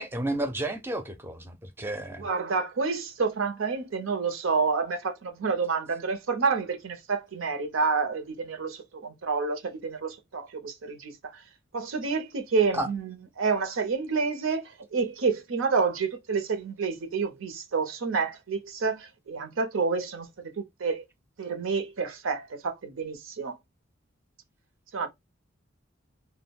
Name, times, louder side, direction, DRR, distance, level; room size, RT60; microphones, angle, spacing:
voice 1, 0.0-2.2 12.7-12.9, right 1 dB, 10° right, 0.4 m, -32 dB
voice 2, 2.2-11.3 11.7-21.0 21.4-23.6 24.9-25.1, right 4 dB, 90° right, 0.6 m, -29 dB
2.2 x 2.1 x 3.4 m
head